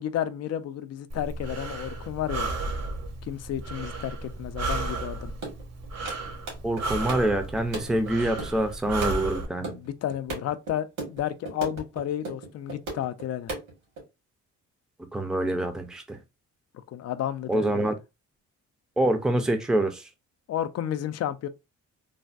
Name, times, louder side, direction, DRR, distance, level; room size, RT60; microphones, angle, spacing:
voice 1, 0.0-2.5 3.2-5.3 9.6-13.5 16.7-17.8 20.5-21.5, left 11 dB, 55° left, 0.5 m, -32 dB
Breathing, 1.1-9.4, right 3 dB, 60° right, 0.8 m, -34 dB
sound 1, 5.4-10.7 11.0-11.2 11.4-13.2 13.5-14.0, right 3 dB, 90° right, 1.8 m, -35 dB
voice 2, 6.6-9.8 15.1-16.2 17.5-18.0 19.0-20.1, right 1 dB, ahead, 0.5 m, -26 dB
3.3 x 2.2 x 2.5 m
cardioid pair, 90°, 30 cm